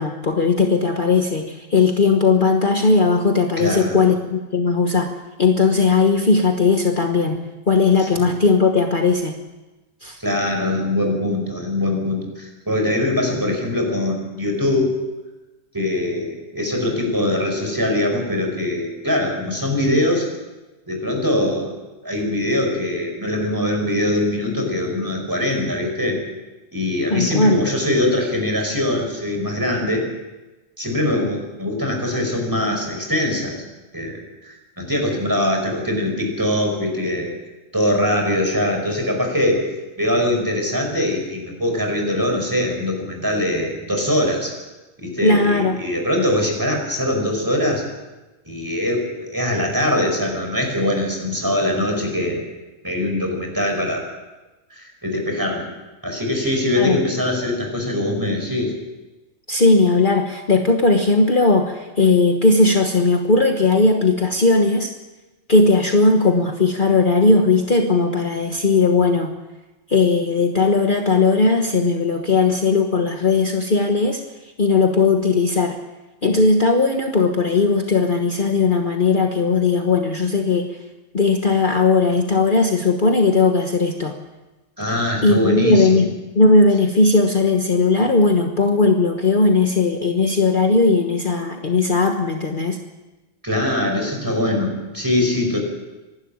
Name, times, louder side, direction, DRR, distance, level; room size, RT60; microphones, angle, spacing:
voice 1, 0.0-5.1 5.4-9.4 10.0-10.2 27.1-27.6 45.2-45.8 56.8-57.0 59.5-64.9 65.5-69.3 69.9-74.2 74.6-75.8 76.2-80.8 81.1-84.2 85.2-86.1 86.3-92.8, left 3 dB, 40° left, 3 dB, 1.4 m, -17 dB
voice 2, 3.6-4.0 8.0-8.3 10.2-15.0 15.7-20.3 20.9-21.8 22.0-26.2 26.7-30.1 30.8-33.6 33.9-37.3 37.7-39.7 40.0-44.5 45.0-47.9 48.5-52.4 52.8-54.1 54.7-55.7 56.0-58.7 84.8-86.1 93.4-95.6, left 1 dB, 15° right, 2 dB, 5.2 m, -22 dB
25.5 x 12.0 x 8.8 m, 1.1 s
omnidirectional pair, 1.3 m